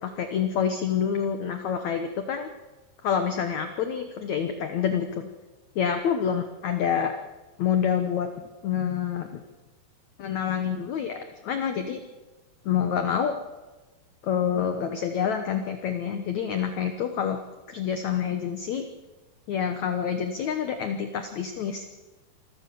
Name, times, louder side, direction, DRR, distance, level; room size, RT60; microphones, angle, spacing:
voice 1, 0.0-2.5 3.0-5.3 5.7-7.1 7.6-8.3 8.6-9.4 10.2-12.0 12.6-13.4 14.2-17.4 17.7-18.9 19.5-21.9, left 8 dB, 80° left, 7 dB, 1.6 m, -27 dB
27.0 x 14.5 x 7.0 m, 1.2 s
omnidirectional pair, 5.1 m